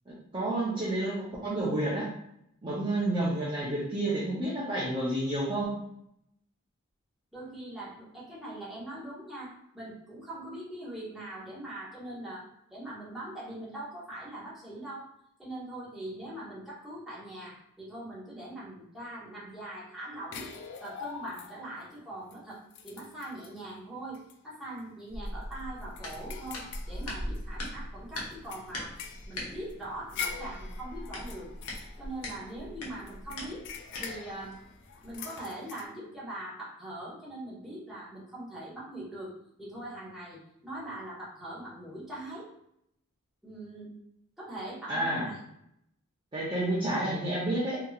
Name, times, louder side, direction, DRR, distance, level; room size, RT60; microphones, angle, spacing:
voice 1, 0.1-2.1 2.6-5.7 44.9-45.3 46.3-47.8, right 1 dB, 20° right, -8 dB, 0.6 m, -30 dB
voice 2, 7.3-12.4 12.7-15.1 15.4-20.5 20.8-22.6 22.8-28.9 29.3-31.5 32.0-33.6 34.0-34.6 35.0-39.3 39.6-42.5 43.4-43.9 44.4-45.4, right 1 dB, ahead, -9 dB, 1.0 m, -42 dB
sound 1, 20.3-21.8 22.3-22.4 22.7-23.6 24.1-24.3 24.7-24.8 25.3-27.7 28.1-32.6 33.1-35.8, left 6 dB, 55° left, 0.3 m, -43 dB
sound 2, 25.1-35.2, left 1 dB, 90° left, 0.7 m, -41 dB
2.8 x 2.7 x 2.3 m, 0.77 s
head